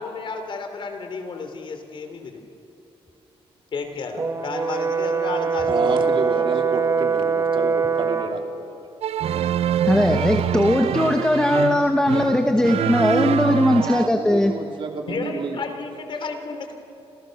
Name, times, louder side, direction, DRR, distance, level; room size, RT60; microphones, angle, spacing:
voice 1, 0.0-2.4 3.7-6.0 15.1-16.7, left 4 dB, 55° left, 7 dB, 3.1 m, -32 dB
Brass instrument, 4.2-8.4, right 5 dB, 30° right, 1.6 m, -22 dB
voice 2, 5.7-8.8 13.6-15.6, right 4 dB, 55° right, 3 dB, 3.0 m, -30 dB
sound 1, 9.0-14.1, right 10 dB, 80° right, 0.5 m, -25 dB
voice 3, 9.9-14.5, left 1 dB, 5° left, 5 dB, 1.2 m, -19 dB
28.5 x 27.5 x 6.6 m, 2.8 s
wide cardioid pair, 160°, 10 cm